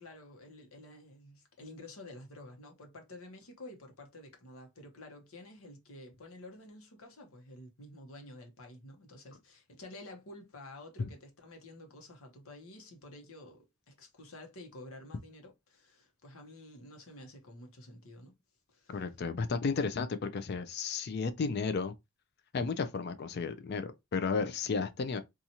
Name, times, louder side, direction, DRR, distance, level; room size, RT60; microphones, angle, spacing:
voice 1, 0.0-18.4 18.7-19.0, left 1 dB, 85° left, 0.9 m, -50 dB
voice 2, 18.9-21.9 22.5-25.2, left 4 dB, 50° left, 0.4 m, -33 dB
2.7 x 2.4 x 2.8 m
head